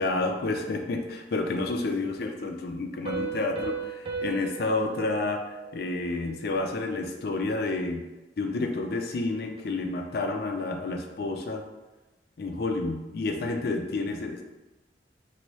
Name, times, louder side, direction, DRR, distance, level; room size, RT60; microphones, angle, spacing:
voice 1, 0.0-8.0 8.4-11.6 12.4-14.4, left 2 dB, 55° left, 4 dB, 0.4 m, -30 dB
Piano, 3.0-6.5, right 5 dB, 30° right, 0.4 m, -37 dB
2.9 x 2.6 x 3.0 m, 1.1 s
head